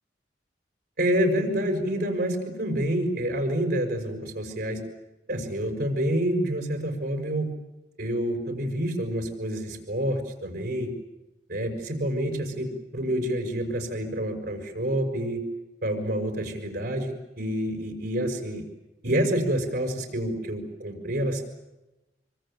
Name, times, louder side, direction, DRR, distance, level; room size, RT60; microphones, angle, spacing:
voice 1, 1.0-4.8 5.3-7.5 8.0-10.9 11.5-15.4 15.8-18.6 19.0-21.4, right 1 dB, 65° right, 3 dB, 6.2 m, -28 dB
26.5 x 25.0 x 9.1 m, 1.0 s
head